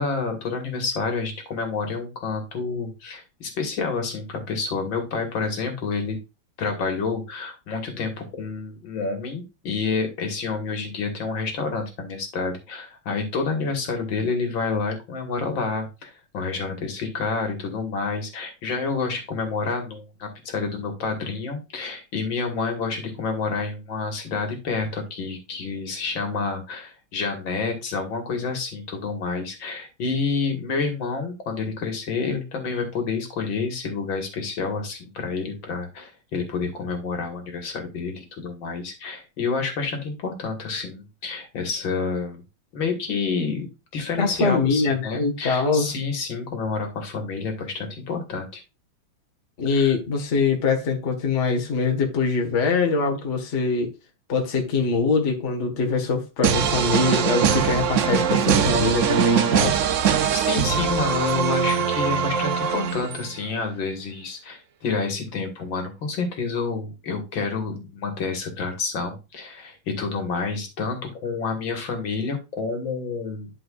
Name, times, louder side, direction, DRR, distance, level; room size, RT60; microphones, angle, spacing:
voice 1, 0.0-6.2 6.6-42.4 42.7-43.7 43.9-48.6 49.7-49.9 60.1-73.5, left 4 dB, 65° left, 2.5 m, -29 dB
voice 2, 44.2-45.9 49.6-53.9 54.3-59.8, left 4 dB, 35° left, 1.7 m, -23 dB
sound 1, 56.4-63.4, right 8 dB, 80° right, 0.7 m, -22 dB
11.5 x 4.7 x 2.4 m
omnidirectional pair, 2.3 m